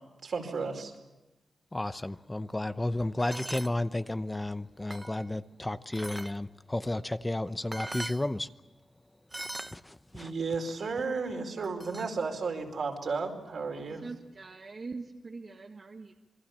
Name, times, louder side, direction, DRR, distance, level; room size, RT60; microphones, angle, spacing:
voice 1, 0.2-0.9 10.1-14.1, right 4 dB, 70° right, 4.9 m, -33 dB
voice 2, 1.7-8.5 9.7-10.3, left 1 dB, 20° left, 0.8 m, -32 dB
sound 1, 3.2-3.7 4.4-5.3 5.9-6.3 7.4-7.5 7.7-8.2 9.3-9.8 11.6-12.1, right 1 dB, 15° right, 0.8 m, -40 dB
voice 3, 14.0-16.1, right 4 dB, 50° right, 1.6 m, -42 dB
27.5 x 22.0 x 7.3 m
cardioid pair, 85°, 0 cm